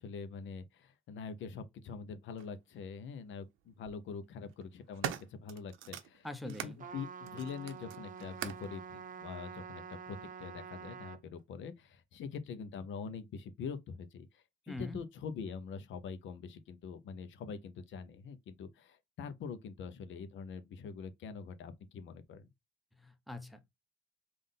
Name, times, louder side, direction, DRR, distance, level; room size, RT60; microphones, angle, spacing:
voice 1, 0.0-22.5, left 6 dB, 75° left, 0.7 m, -44 dB
sound 1, 2.4-2.5 3.6-3.9 4.5-6.8 7.2-8.7 9.6-9.7, right 10 dB, 90° right, 0.6 m, -43 dB
voice 2, 6.2-6.8 14.7-15.0 23.0-23.8, left 1 dB, ahead, 0.6 m, -44 dB
Trumpet, 6.8-11.2, right 6 dB, 40° right, 0.6 m, -47 dB
3.7 x 2.5 x 3.7 m
cardioid pair, 90°, 20 cm